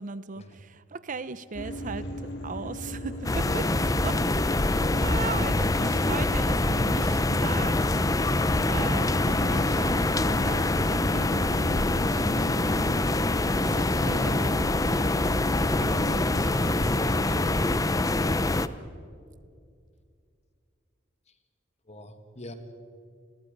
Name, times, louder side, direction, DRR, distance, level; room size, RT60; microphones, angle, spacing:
voice 1, 0.0-4.2 4.6-7.9 8.7-13.0 13.6-15.4 15.8-17.1, right 4 dB, 45° right, 15 dB, 0.6 m, -39 dB
sound 1, 1.5-17.8, equal, 70° left, 3.2 m, -37 dB
sound 2, 3.2-18.7, left 2 dB, 20° left, 0.6 m, -25 dB
voice 2, 21.9-22.5, left 1 dB, 35° left, 7 dB, 2.0 m, -46 dB
29.0 x 21.0 x 5.3 m, 2.3 s
head